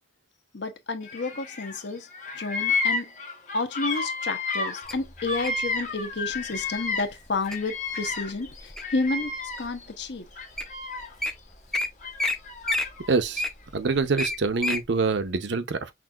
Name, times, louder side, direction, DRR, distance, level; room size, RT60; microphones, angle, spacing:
voice 1, 0.5-2.1 2.4-3.1 3.5-8.5 8.9-10.2, left 3 dB, 70° left, 0.8 m, -30 dB
Bird vocalization bird call bird song, 1.1-1.8 2.1-7.2 7.4-9.9 10.3-11.3 12.0-13.1, left 4 dB, 40° left, 1.0 m, -31 dB
Wild animals, 4.9-5.6 6.3-6.6 7.1-7.6 8.1-9.0 9.6-9.7 10.3-10.4 10.6-10.7 11.0-11.3 11.7-11.9 12.2-12.4 12.6-14.8 15.3-15.4, left 2 dB, ahead, 0.5 m, -29 dB
voice 2, 13.1-13.4 13.7-15.9, right 4 dB, 75° right, 0.6 m, -25 dB
5.9 x 2.6 x 2.3 m
head